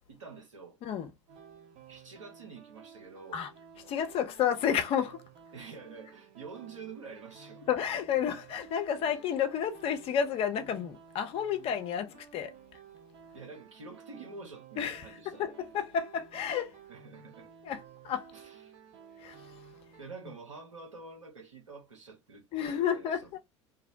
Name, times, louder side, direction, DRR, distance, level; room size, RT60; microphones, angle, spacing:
voice 1, 0.1-0.8 1.9-3.4 5.5-7.7 13.3-15.5 16.9-17.5 18.3-18.8 20.0-23.4, right 4 dB, 75° right, 0.9 m, -48 dB
sound 1, 1.3-20.0, right 7 dB, 45° right, 0.8 m, -54 dB
voice 2, 3.8-5.2 7.7-12.5 14.8-16.8 17.6-17.8 18.0-18.3 19.2-19.6 22.5-23.4, left 8 dB, 35° left, 0.5 m, -31 dB
2.5 x 2.0 x 2.5 m
figure-of-eight pair, 70°, 16 cm